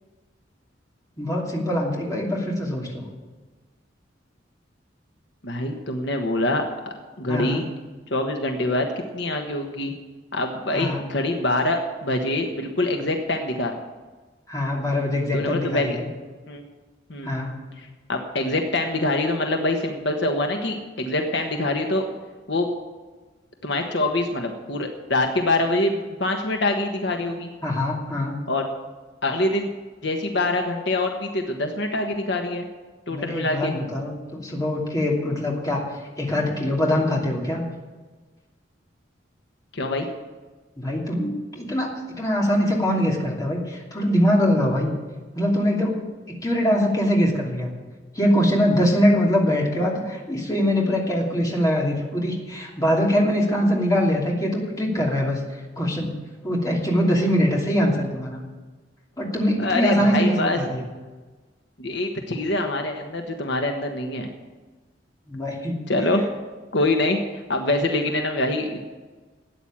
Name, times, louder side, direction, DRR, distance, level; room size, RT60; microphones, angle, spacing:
voice 1, 1.2-3.1 7.3-7.6 10.7-11.0 14.5-16.0 17.2-17.6 27.6-28.3 33.1-35.8 36.2-37.6 40.8-41.9 42.2-45.0 45.3-45.9 46.3-47.7 48.1-55.4 55.8-56.1 56.4-58.4 59.2-60.9 65.3-65.8, equal, 20° left, -2 dB, 2.8 m, -23 dB
voice 2, 5.4-7.6 8.1-8.9 9.1-9.9 10.3-13.7 15.3-16.0 16.5-16.6 17.1-17.3 17.8-22.0 22.5-22.7 23.6-27.5 28.5-28.6 29.2-29.7 30.0-32.7 33.1-33.7 39.7-40.1 59.6-60.6 61.8-64.3 65.9-66.2 66.7-68.8, left 2 dB, 65° left, 4 dB, 1.4 m, -25 dB
13.5 x 9.1 x 8.7 m, 1.3 s
head